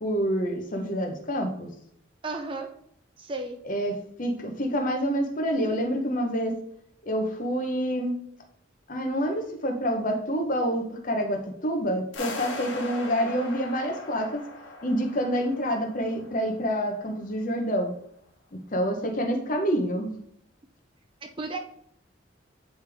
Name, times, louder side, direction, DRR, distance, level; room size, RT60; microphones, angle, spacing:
voice 1, 0.0-1.7 3.6-3.9 4.2-6.5 7.0-8.2 8.9-14.4 14.8-17.9 18.7-20.2, equal, 45° left, 3 dB, 0.9 m, -27 dB
voice 2, 2.2-2.7 3.2-3.6 21.2-21.6, right 3 dB, 25° right, 5 dB, 0.5 m, -33 dB
sound 1, 12.1-17.1, left 2 dB, 80° left, 1.3 m, -39 dB
8.7 x 3.4 x 3.5 m, 0.69 s
head